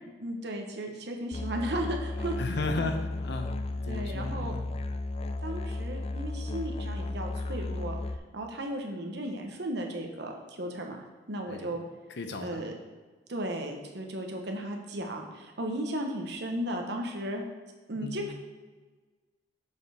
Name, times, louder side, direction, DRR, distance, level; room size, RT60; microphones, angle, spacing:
voice 1, 0.2-2.4 2.7-2.9 3.9-4.5 5.4-8.0 8.3-11.8 12.4-12.7 13.3-17.4 17.9-18.3, right 1 dB, 65° right, 2 dB, 1.1 m, -35 dB
Musical instrument, 1.3-8.2, left 2 dB, 35° left, 0.3 m, -34 dB
voice 2, 2.4-4.7 11.5-11.7 12.1-12.7 18.0-18.3, left 3 dB, 65° left, 6 dB, 0.7 m, -35 dB
7.1 x 6.6 x 3.5 m, 1.4 s
head